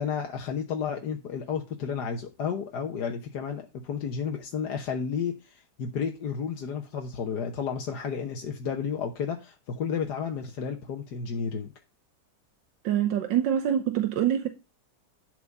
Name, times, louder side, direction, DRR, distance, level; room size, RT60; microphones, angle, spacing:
voice 1, 0.0-11.7, left 6 dB, 65° left, 1.7 m, -32 dB
voice 2, 12.8-14.5, right 10 dB, 90° right, 1.7 m, -25 dB
12.0 x 4.9 x 5.4 m
omnidirectional pair, 2.0 m